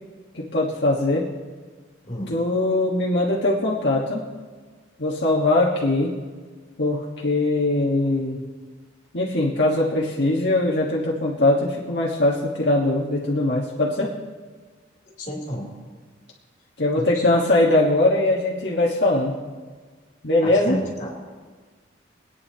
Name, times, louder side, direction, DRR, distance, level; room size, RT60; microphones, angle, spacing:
voice 1, 0.3-1.3 2.3-4.2 5.0-6.1 6.8-8.4 9.1-14.2 16.8-19.4 20.2-20.8, left 2 dB, 65° left, -4 dB, 1.4 m, -21 dB
voice 2, 15.2-15.7 16.9-17.3 20.4-21.1, equal, 40° left, -2 dB, 3.0 m, -31 dB
25.0 x 9.4 x 2.8 m, 1.5 s
head